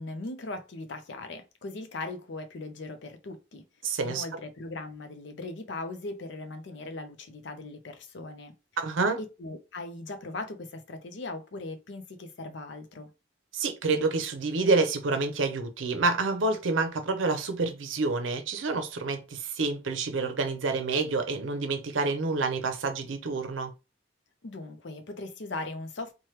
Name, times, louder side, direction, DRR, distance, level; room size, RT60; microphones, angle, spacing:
voice 1, 0.0-3.6 4.0-8.5 9.2-13.1 24.4-26.1, left 2 dB, 65° left, 0.6 m, -39 dB
voice 2, 3.8-4.2 8.8-9.2 13.5-23.7, right 3 dB, 80° right, 0.6 m, -28 dB
3.1 x 2.2 x 2.9 m
head